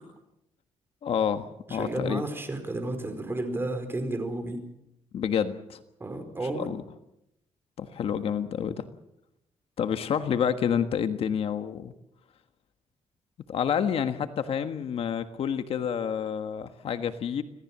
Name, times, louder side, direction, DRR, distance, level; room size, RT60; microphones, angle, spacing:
voice 1, 1.0-2.2 5.1-5.8 6.5-6.8 7.8-8.8 9.8-11.9 13.5-17.4, left 8 dB, 60° left, 9 dB, 1.5 m, -28 dB
voice 2, 1.7-4.6 6.0-6.7, right 2 dB, 20° right, 7 dB, 4.8 m, -32 dB
26.5 x 18.0 x 7.4 m, 0.85 s
cardioid pair, 140°, 11 cm